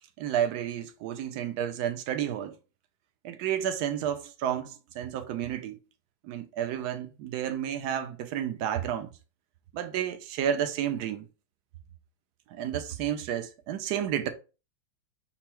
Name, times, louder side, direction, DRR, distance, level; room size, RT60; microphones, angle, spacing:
voice 1, 0.2-2.6 3.2-5.8 6.2-9.1 9.7-11.3 12.5-14.3, right 10 dB, 75° right, 0.9 m, -31 dB
5.7 x 2.0 x 4.3 m
omnidirectional pair, 2.3 m